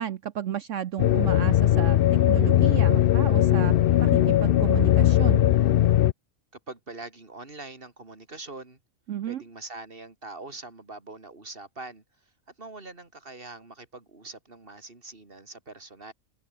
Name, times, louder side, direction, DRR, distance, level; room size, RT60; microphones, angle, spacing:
voice 1, 0.0-3.7 4.0-5.4 9.1-9.4, right 10 dB, 65° right, 1.0 m, -32 dB
sound 1, 1.0-6.1, left 12 dB, 70° left, 0.5 m, -20 dB
voice 2, 6.7-8.8 9.2-12.0 12.6-16.1, right 3 dB, 40° right, 3.7 m, -43 dB
omnidirectional pair, 1.5 m